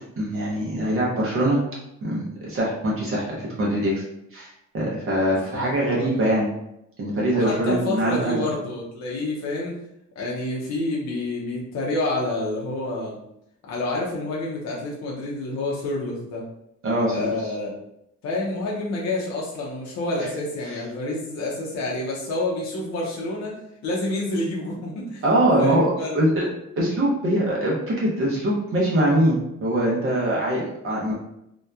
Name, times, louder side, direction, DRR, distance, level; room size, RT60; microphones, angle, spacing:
voice 1, 0.2-1.6 2.0-4.0 4.3-6.5 7.0-8.5 16.8-17.3 20.7-20.8 25.2-25.9 26.1-26.5 26.8-31.1, right 1 dB, 45° right, -4 dB, 0.6 m, -23 dB
voice 2, 5.3-6.3 7.3-9.8 10.2-13.2 13.7-16.4 17.1-17.7 18.2-23.6 23.8-25.2 25.6-26.3, left 2 dB, 65° left, -4 dB, 0.6 m, -28 dB
2.7 x 2.2 x 2.2 m, 0.80 s
cardioid pair, 175°, 29 cm